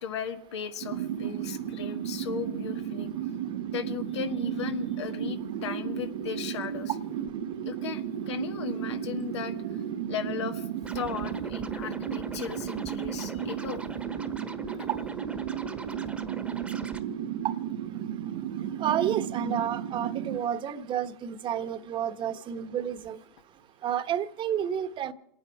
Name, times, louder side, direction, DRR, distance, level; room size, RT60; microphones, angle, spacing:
voice 1, 0.0-3.1 3.7-6.9 7.6-9.8 10.1-10.7 10.9-13.8, left 8 dB, 80° left, 1.7 m, -36 dB
sound 1, 0.8-20.4, right 9 dB, 70° right, 1.0 m, -34 dB
Scratching (performance technique), 10.8-17.0, right 2 dB, 5° right, 1.3 m, -42 dB
voice 2, 18.8-23.2 23.8-25.1, right 9 dB, 35° right, 1.2 m, -30 dB
28.0 x 9.5 x 4.8 m
hypercardioid pair, 110°, 14 cm